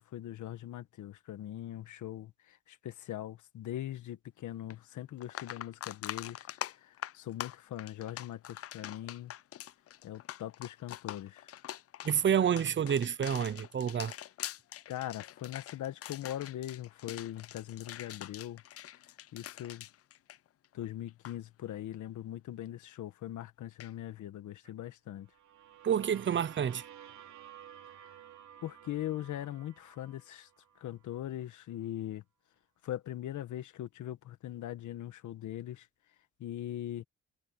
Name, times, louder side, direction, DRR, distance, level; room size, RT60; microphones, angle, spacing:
voice 1, 0.0-9.3 10.0-11.5 14.9-18.6 19.3-19.9 20.7-25.3 28.6-30.5 30.8-32.2 32.8-35.9 36.4-37.0, left 12 dB, 75° left, 1.6 m, -41 dB
sound 1, 4.7-4.8 5.2-20.8 21.1-21.4 23.8-23.9, left 12 dB, 50° left, 0.5 m, -44 dB
voice 2, 12.0-14.1 25.8-26.8, right 8 dB, 40° right, 0.8 m, -29 dB
sound 2, 25.3-31.1, right 9 dB, 65° right, 3.7 m, -53 dB
cardioid pair, 90°, 30 cm